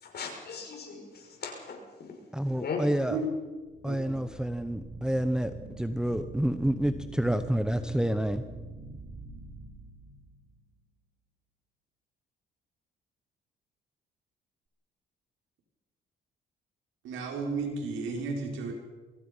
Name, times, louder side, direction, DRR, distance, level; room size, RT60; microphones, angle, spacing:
voice 1, 0.0-1.8 2.6-2.8, left 5 dB, 55° left, 2 dB, 6.6 m, -37 dB
voice 2, 2.3-3.2 3.8-8.4, right 1 dB, 5° right, 9 dB, 1.1 m, -29 dB
sound 1, 3.6-10.6, right 2 dB, 35° right, 5.4 m, -45 dB
voice 3, 3.9-4.2 17.0-18.7, right 3 dB, 80° right, 1 dB, 6.0 m, -33 dB
25.0 x 22.0 x 5.7 m, 1.3 s
cardioid pair, 90°, 20 cm